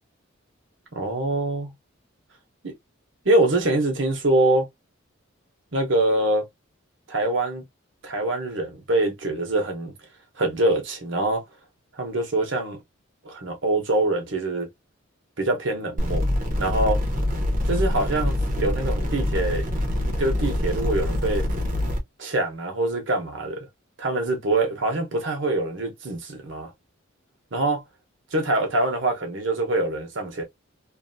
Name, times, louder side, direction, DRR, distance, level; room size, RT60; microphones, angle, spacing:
voice 1, 0.9-1.7 2.6-2.7 3.2-4.7 5.7-6.5 7.1-7.6 8.0-9.9 10.4-11.4 12.0-12.8 13.2-14.7 15.4-16.3 16.6-17.0 17.7-19.7 20.2-21.4 22.2-23.7 24.0-26.7 27.5-27.8 28.3-30.4, right 2 dB, 65° right, 1.1 m, -24 dB
sound 1, 16.0-22.0, left 1 dB, 40° right, 0.9 m, -25 dB
2.7 x 2.6 x 2.6 m
head